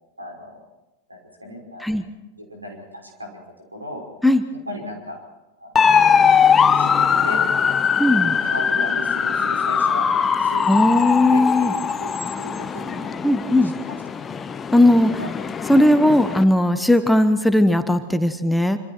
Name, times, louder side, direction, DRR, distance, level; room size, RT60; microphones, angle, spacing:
voice 1, 0.2-0.6 1.1-1.9 2.3-3.4 3.7-4.0 4.7-5.2 5.6-6.0 6.8-7.4 8.1-10.1 10.4-13.2 13.6-14.3 15.2-15.3 15.8-16.0, equal, 80° right, 1 dB, 5.5 m, -36 dB
sound 1, 5.8-16.4, left 6 dB, 20° left, 0.9 m, -21 dB
voice 2, 8.0-8.3 10.7-11.7 13.2-13.7 14.7-15.2 15.7-18.8, left 1 dB, 5° left, 9 dB, 1.2 m, -17 dB
26.5 x 26.0 x 4.5 m, 1.0 s
figure-of-eight pair, 90°, 0 cm